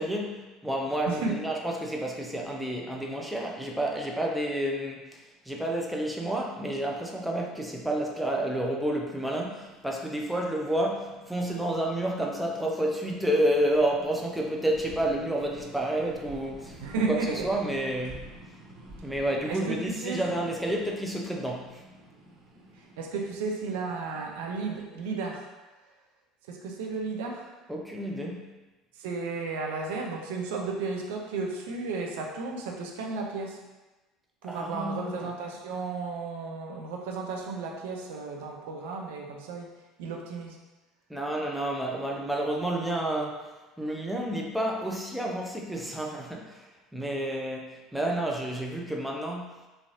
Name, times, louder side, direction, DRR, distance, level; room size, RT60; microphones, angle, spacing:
voice 1, 0.0-16.8 17.4-18.3 19.0-21.8 27.7-28.5 34.5-35.3 41.1-43.5 43.8-49.5, right 1 dB, 5° right, -1 dB, 0.5 m, -30 dB
voice 2, 1.1-1.4 16.8-17.5 19.5-20.2 22.8-25.5 26.5-27.5 28.9-33.6 34.4-39.7 40.0-40.6, right 4 dB, 70° right, 1 dB, 0.4 m, -33 dB
sound 1, 9.6-24.8, right 1 dB, 35° right, 1.3 m, -50 dB
3.1 x 2.5 x 2.4 m, 1.2 s
hypercardioid pair, 65°, 0 cm